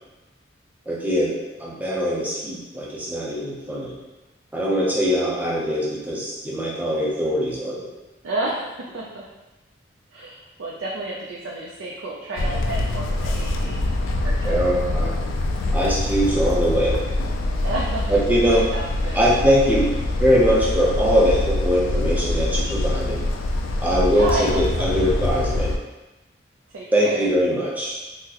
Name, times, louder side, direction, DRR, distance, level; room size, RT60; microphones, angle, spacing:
voice 1, 0.9-1.3 1.6-3.9 4.5-7.9 14.4-15.1 15.7-17.0 18.1-18.7 19.1-19.9 20.2-23.2 23.8-25.7 26.9-28.0, equal, 10° right, -5 dB, 0.5 m, -21 dB
voice 2, 8.2-9.2 10.1-13.8 14.2-14.6 17.6-18.2 18.5-19.2 24.1-25.2 26.7-27.2, right 2 dB, 85° right, -3 dB, 0.4 m, -31 dB
sound 1, 12.4-25.8, left 2 dB, 90° left, 0.3 m, -24 dB
3.8 x 2.1 x 2.8 m, 1.1 s
head